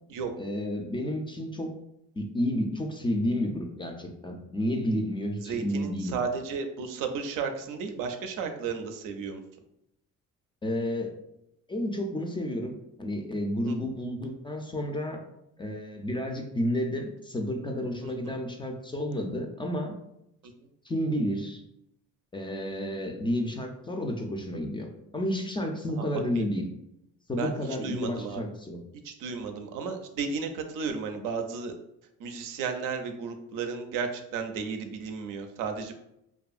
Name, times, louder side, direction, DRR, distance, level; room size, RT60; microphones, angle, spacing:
voice 1, 0.4-1.7 2.2-6.2 10.6-11.1 11.7-12.7 13.0-15.2 15.6-19.9 20.8-21.6 22.3-26.6 27.3-28.8, left 1 dB, 15° left, 3 dB, 0.3 m, -31 dB
voice 2, 5.4-9.4 13.7-13.8 18.0-18.4 25.9-26.4 27.4-28.4 29.0-31.7 32.2-35.9, right 5 dB, 80° right, 6 dB, 0.5 m, -34 dB
2.6 x 2.3 x 2.4 m, 0.80 s
cardioid pair, 85°, 32 cm